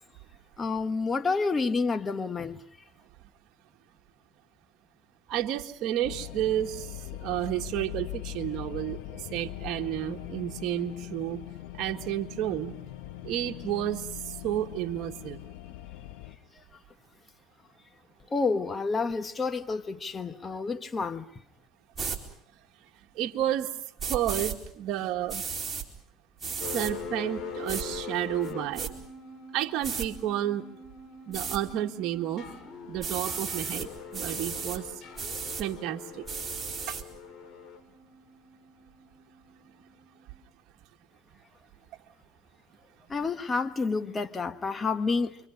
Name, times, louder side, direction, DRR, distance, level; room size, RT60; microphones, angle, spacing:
voice 1, 0.6-2.6 16.5-16.6 18.3-21.3 43.1-45.4, left 4 dB, 25° left, 7 dB, 1.3 m, -29 dB
voice 2, 5.3-11.4 11.7-12.7 13.2-15.4 23.1-23.7 24.1-25.4 26.7-28.9 29.5-30.6 31.3-32.5 32.9-34.9 35.6-36.2 36.9-37.0, right 12 dB, 60° right, 2 dB, 1.7 m, -31 dB
sound 1, 6.0-16.4, left 15 dB, 80° left, 1.4 m, -41 dB
sound 2, 21.9-22.2 24.0-24.6 25.3-25.9 26.4-26.9 27.7-27.8 28.4-28.9 29.8-30.1 31.3-31.6 33.0-33.9 34.1-34.8 35.2-35.6 36.3-37.0, right 5 dB, 25° right, 4.3 m, -34 dB
sound 3, 26.6-40.4, left 5 dB, 40° left, 7.0 m, -43 dB
29.5 x 24.5 x 5.4 m, 0.68 s
supercardioid pair, 100°, 0 cm